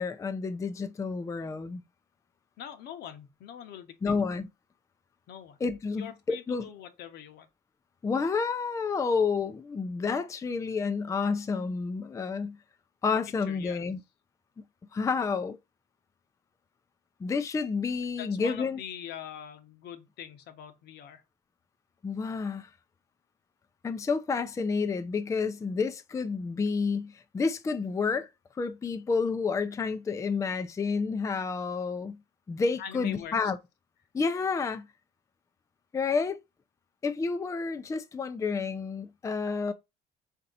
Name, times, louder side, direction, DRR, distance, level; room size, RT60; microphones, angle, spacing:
voice 1, 0.0-1.8 4.0-4.5 5.6-6.7 8.0-12.6 13.0-14.0 14.9-15.6 17.2-18.8 22.0-22.7 23.8-28.3 28.6-32.2 32.5-33.6 34.1-34.9 35.9-36.4 37.0-39.7, left 5 dB, 20° left, 0.4 m, -30 dB
voice 2, 2.6-4.2 5.3-5.6 6.0-7.5 13.5-13.8 18.2-21.2 32.8-33.3, left 9 dB, 75° left, 0.9 m, -43 dB
4.3 x 2.8 x 3.9 m
cardioid pair, 110°, 17 cm